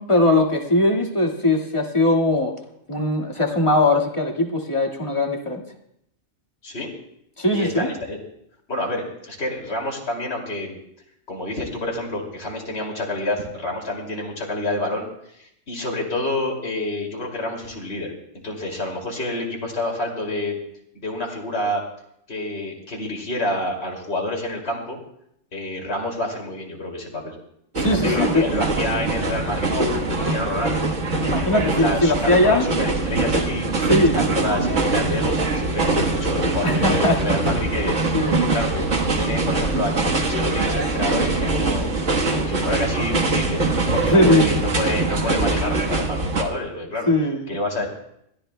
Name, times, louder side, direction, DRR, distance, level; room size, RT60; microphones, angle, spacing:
voice 1, 0.0-2.6 2.9-5.6 7.4-7.9 27.8-28.5 31.2-32.7 33.9-34.4 36.6-37.2 38.1-38.4 44.1-44.6 47.1-47.5, left 1 dB, 25° left, 0 dB, 1.9 m, -20 dB
voice 2, 7.5-8.2 8.7-10.8 11.3-15.1 15.4-18.1 18.4-20.6 20.9-21.8 22.3-25.0 25.5-27.3 27.8-30.8 31.3-37.9 38.4-38.9 39.1-41.9 42.3-47.1 47.5-47.9, left 1 dB, 60° left, -1 dB, 2.9 m, -28 dB
sound 1, 27.7-46.4, right 3 dB, 85° right, 1.8 m, -23 dB
22.5 x 15.5 x 2.2 m, 0.76 s
omnidirectional pair, 1.2 m